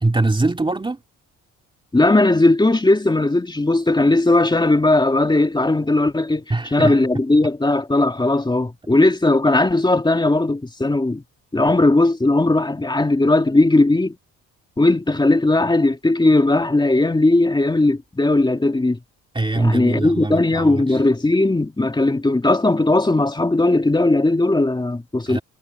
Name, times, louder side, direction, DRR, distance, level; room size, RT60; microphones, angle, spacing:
voice 1, 0.0-1.0 6.5-7.0 9.0-9.1 19.3-21.0 25.3-25.4, right 2 dB, 15° right, 2.4 m, -22 dB
voice 2, 1.9-6.4 6.7-11.2 11.5-14.2 14.8-19.0 19.5-25.4, left 2 dB, 15° left, 2.8 m, -17 dB
cardioid pair, 90°, 30 cm